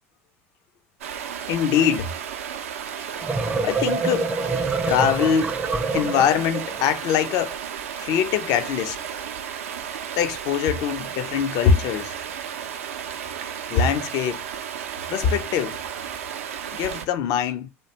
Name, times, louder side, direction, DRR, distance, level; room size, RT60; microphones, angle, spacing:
Stream, 1.0-17.1, right 8 dB, 80° right, 0.4 m, -33 dB
voice 1, 1.5-2.1 3.6-4.3 4.9-5.6 5.9-7.6 8.0-9.0 10.2-12.1 13.7-14.5 15.1-15.8 16.7-17.7, left 8 dB, 60° left, 0.4 m, -23 dB
sound 1, 3.0-6.9, right 3 dB, 20° right, 0.4 m, -26 dB
2.5 x 2.1 x 2.8 m
hypercardioid pair, 70°, 7 cm